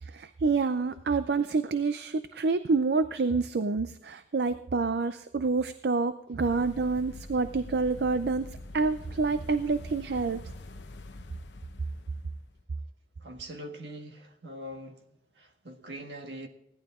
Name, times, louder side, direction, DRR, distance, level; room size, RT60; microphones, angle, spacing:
voice 1, 0.0-10.4, right 4 dB, 65° right, 0.5 m, -28 dB
sound 1, 6.4-12.6, left 2 dB, 85° left, 0.9 m, -45 dB
voice 2, 13.2-15.0 15.4-16.5, equal, 80° right, 1.7 m, -42 dB
16.5 x 11.0 x 3.7 m
head